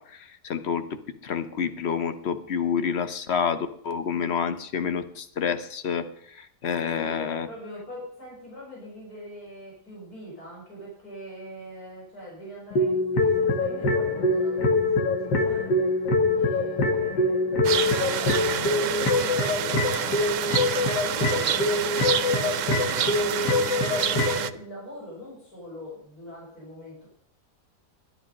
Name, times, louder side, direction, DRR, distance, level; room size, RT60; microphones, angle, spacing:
voice 1, 0.0-7.5, left 7 dB, 45° left, 10 dB, 1.1 m, -29 dB
voice 2, 6.8-15.9 16.3-23.5 23.8-27.1, equal, 60° left, -5 dB, 6.1 m, -42 dB
sound 1, 12.7-24.5, left 2 dB, 75° left, 2.1 m, -24 dB
sound 2, 17.6-24.5, right 10 dB, 65° right, 0.8 m, -28 dB
11.5 x 11.5 x 5.2 m, 0.66 s
omnidirectional pair, 1.8 m